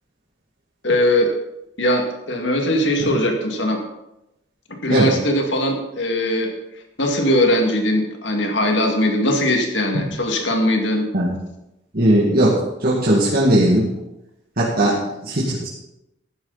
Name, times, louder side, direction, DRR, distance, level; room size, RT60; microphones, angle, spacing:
voice 1, 0.8-1.3 1.8-3.8 4.7-6.5 7.0-11.0 14.8-15.0, left 1 dB, 65° left, 3 dB, 2.2 m, -20 dB
voice 2, 11.9-13.9 14.6-15.0 15.2-15.7, right 1 dB, 50° right, -6 dB, 2.2 m, -18 dB
14.0 x 12.0 x 4.1 m, 0.90 s
head